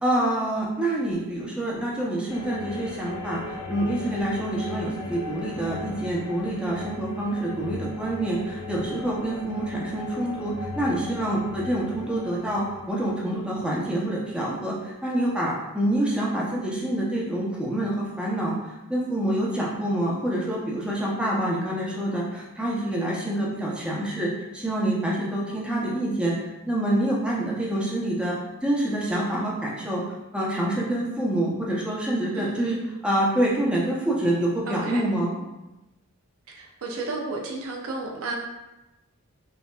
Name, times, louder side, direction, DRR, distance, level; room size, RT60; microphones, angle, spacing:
voice 1, 0.0-26.3 26.7-28.3 28.6-30.0 30.3-35.4, right 1 dB, 5° right, -5 dB, 0.7 m, -27 dB
sound 1, 2.3-14.4, left 2 dB, 80° left, 0.8 m, -38 dB
voice 2, 32.3-32.9 34.7-35.1 36.5-38.4, right 3 dB, 70° right, 0 dB, 0.6 m, -33 dB
5.3 x 2.7 x 2.3 m, 0.99 s
head